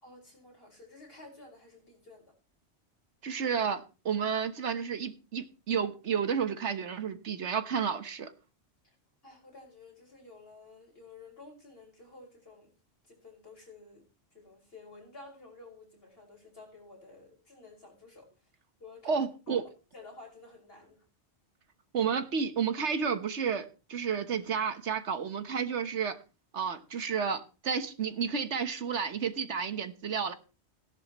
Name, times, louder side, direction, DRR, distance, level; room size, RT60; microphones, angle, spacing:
voice 1, 0.0-2.3 8.8-8.9 9.2-12.7 13.0-14.1 14.3-18.3 18.8-21.0, left 3 dB, 55° left, 0 dB, 6.1 m, -52 dB
voice 2, 3.2-8.3 19.0-19.6 21.9-26.2 26.5-30.3, right 6 dB, 75° right, 10 dB, 1.5 m, -31 dB
17.5 x 11.0 x 3.0 m, 0.33 s
omnidirectional pair, 1.2 m